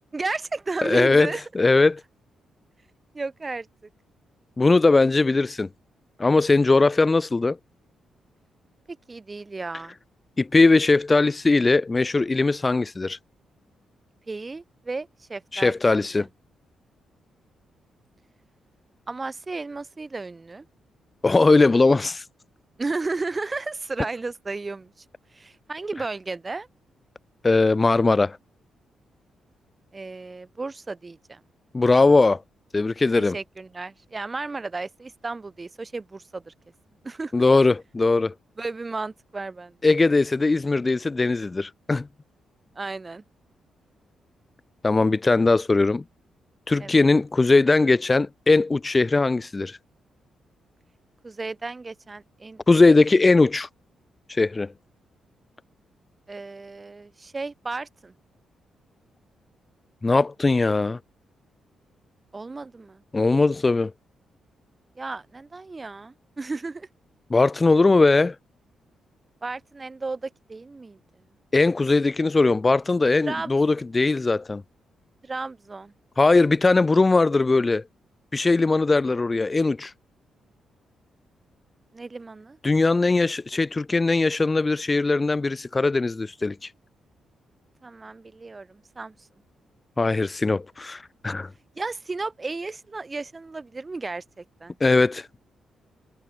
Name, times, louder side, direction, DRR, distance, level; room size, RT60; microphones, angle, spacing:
voice 1, 0.1-1.4 3.1-3.7 8.9-10.0 14.3-16.3 19.1-20.7 22.8-25.0 25.3-26.7 29.9-31.4 33.2-36.5 37.0-37.4 38.6-39.8 42.8-43.2 46.8-47.1 51.2-52.8 56.3-58.1 62.3-63.0 65.0-66.9 69.4-71.0 73.3-73.6 75.2-75.9 81.9-82.6 87.8-89.2 91.8-94.8, right 3 dB, 20° right, 7.4 m, -34 dB
voice 2, 0.8-1.3 1.5-2.0 4.6-5.7 6.2-7.6 10.4-13.2 15.5-16.3 21.2-22.2 27.4-28.4 31.7-32.4 32.7-33.4 37.3-38.3 39.8-42.1 44.8-46.0 46.7-49.8 52.7-53.7 54.3-54.7 60.0-61.0 63.1-63.9 67.3-68.4 71.5-74.6 76.2-77.8 78.3-79.9 82.6-86.7 90.0-91.5 94.8-95.3, left 3 dB, 20° left, 2.3 m, -20 dB
cardioid pair, 135°, 0 cm